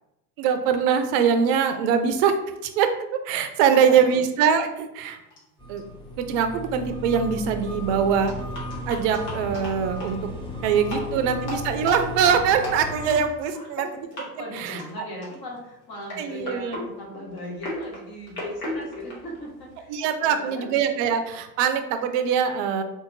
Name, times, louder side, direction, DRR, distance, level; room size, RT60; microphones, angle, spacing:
voice 1, 0.4-2.4 2.6-2.9 3.2-5.2 5.7-5.8 6.2-8.3 8.9-10.2 10.6-13.8 14.3-14.8 16.2-16.8 19.9-22.8, right 7 dB, 50° right, 7 dB, 0.5 m, -23 dB
voice 2, 3.6-4.2 10.5-11.4 13.1-13.3 13.5-13.9 14.4-20.7, left 1 dB, 45° left, -2 dB, 1.4 m, -39 dB
sound 1, 5.3-5.4 5.8-5.9 6.8-6.9 7.2-7.3 8.3-10.2 10.8-11.1 11.4-13.9 14.1-14.3 14.6-14.9 15.2-15.6 16.0-19.9, left 2 dB, 80° left, 1.4 m, -35 dB
sound 2, 5.6-13.1, left 1 dB, 10° left, 1.0 m, -35 dB
3.6 x 2.7 x 2.6 m, 0.90 s
hypercardioid pair, 80°, 47 cm